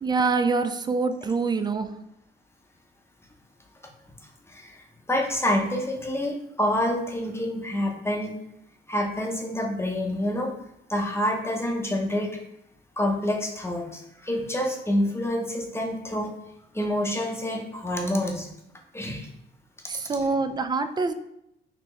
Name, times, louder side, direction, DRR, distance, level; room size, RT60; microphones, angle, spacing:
voice 1, 0.0-1.9 19.9-21.1, right 4 dB, 20° right, 9 dB, 0.3 m, -25 dB
voice 2, 4.5-8.3 8.9-10.5 10.9-12.3 13.0-16.3 16.7-18.5 18.9-19.3, left 1 dB, 10° left, 1 dB, 0.7 m, -27 dB
4.2 x 2.8 x 3.1 m, 0.80 s
cardioid pair, 90°, 20 cm